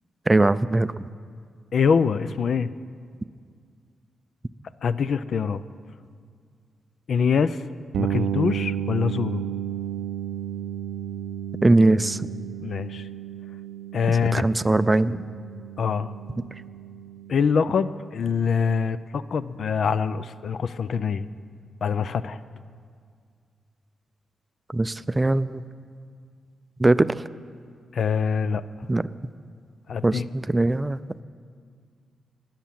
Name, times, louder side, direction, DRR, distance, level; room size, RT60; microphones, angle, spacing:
voice 1, 0.3-0.9 11.6-12.3 14.1-15.2 24.7-25.6 26.8-27.2 28.9-29.1 30.0-31.0, right 2 dB, 20° right, 15 dB, 0.4 m, -21 dB
voice 2, 1.7-2.7 4.8-5.6 7.1-7.6 8.0-9.4 12.6-13.1 13.9-14.5 15.8-16.1 17.3-21.3 21.8-22.4 27.9-28.6 29.9-30.3, left 6 dB, 65° left, 15 dB, 0.4 m, -24 dB
sound 1, 7.9-17.6, right 10 dB, 85° right, 0.4 m, -33 dB
19.5 x 7.3 x 7.5 m, 2.1 s
cardioid pair, 65°, 0 cm